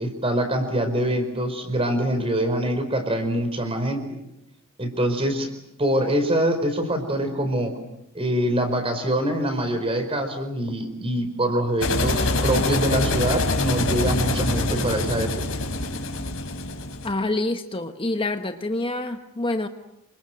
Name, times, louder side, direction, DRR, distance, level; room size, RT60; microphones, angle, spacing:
voice 1, 0.0-4.0 4.8-5.5 5.8-7.8 8.1-15.4, right 1 dB, 25° right, 8 dB, 4.7 m, -24 dB
sound 1, 11.8-17.1, left 2 dB, 65° left, 3.9 m, -25 dB
voice 2, 17.0-19.7, left 2 dB, 25° left, 7 dB, 1.1 m, -27 dB
28.5 x 25.5 x 7.7 m, 0.84 s
head